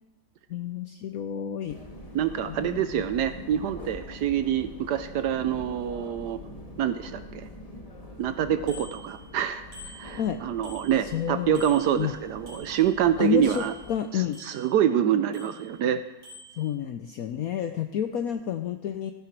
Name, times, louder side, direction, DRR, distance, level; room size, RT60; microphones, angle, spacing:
voice 1, 0.5-1.8 2.5-3.0 10.2-10.4 11.0-11.6 12.0-12.1 13.2-14.4 16.6-19.1, left 8 dB, 75° left, 7 dB, 0.8 m, -30 dB
sound 1, 1.7-14.0, left 1 dB, 20° left, 1.3 m, -44 dB
voice 2, 2.1-6.4 6.8-7.5 8.2-9.6 10.0-13.7 14.1-16.0, right 9 dB, 70° right, 11 dB, 1.1 m, -26 dB
Bicycle bell, 8.7-9.4 9.7-11.2 11.6-13.1 13.4-14.9 15.3-15.9 16.2-16.6, left 1 dB, 50° right, 4.2 m, -48 dB
14.0 x 10.0 x 4.6 m, 1.0 s
omnidirectional pair, 2.1 m